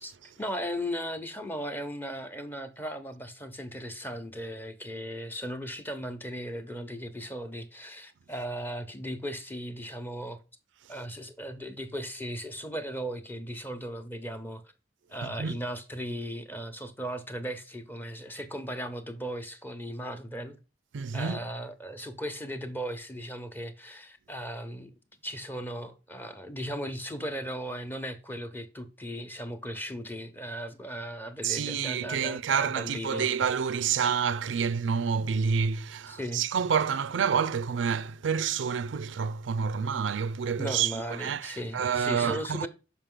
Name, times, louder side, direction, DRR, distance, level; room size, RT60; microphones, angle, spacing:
voice 1, 0.0-10.4 10.9-14.6 15.1-20.6 21.1-24.9 25.2-33.3 36.1-36.4 40.6-42.7, equal, 10° left, 0.9 m, -37 dB
voice 2, 15.2-15.6 20.9-21.4 31.4-42.7, right 6 dB, 90° right, 0.4 m, -28 dB
6.7 x 5.1 x 3.8 m
head